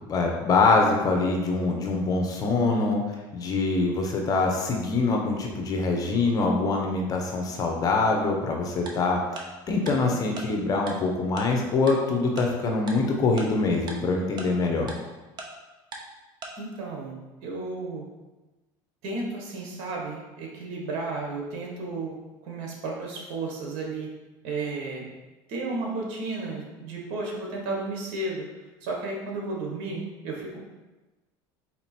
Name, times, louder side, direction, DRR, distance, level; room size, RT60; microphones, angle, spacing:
voice 1, 0.1-3.0 3.3-14.9, left 3 dB, 35° left, 2 dB, 0.9 m, -24 dB
Tick-tock, 8.9-9.0 9.4-9.5 9.9-10.0 10.4-10.5 10.9-11.0 11.4-11.5 11.9-12.0 12.4-12.5 12.9-13.0 13.4-13.5 13.9-14.0 14.4-14.5 14.9-15.0 15.4-15.5 15.9-16.0 16.4-16.5, right 3 dB, 45° right, 0.8 m, -37 dB
voice 2, 16.6-17.2 17.4-18.0 19.0-22.2 22.4-24.1 24.4-25.0 25.5-28.4 28.8-30.7, right 3 dB, 70° right, -1 dB, 1.3 m, -33 dB
4.3 x 2.9 x 4.3 m, 1.1 s
supercardioid pair, 110°, 10 cm